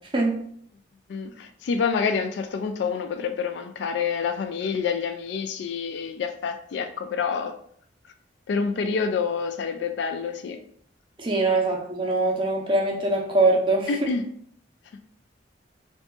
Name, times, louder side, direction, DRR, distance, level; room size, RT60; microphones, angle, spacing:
voice 1, 1.1-7.5 8.5-10.6 13.9-14.2, left 5 dB, 65° left, 8 dB, 0.3 m, -27 dB
voice 2, 11.2-13.9, right 2 dB, 25° right, 0 dB, 0.6 m, -22 dB
2.6 x 2.4 x 3.7 m, 0.64 s
head